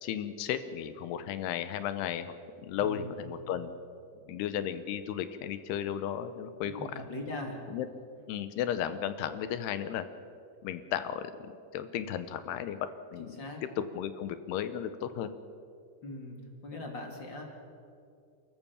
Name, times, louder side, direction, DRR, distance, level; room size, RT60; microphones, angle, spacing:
voice 1, 0.0-3.7 4.3-7.0 7.7-7.9 8.3-10.1 10.6-12.8 13.1-13.4 13.9-15.3, left 9 dB, 80° left, 11 dB, 2.8 m, -34 dB
voice 2, 2.8-3.1 4.2-4.4 6.6-7.6 13.2-13.6 16.0-17.4, left 2 dB, 30° left, 1 dB, 2.8 m, -41 dB
30.0 x 14.5 x 7.1 m, 2.4 s
omnidirectional pair, 4.9 m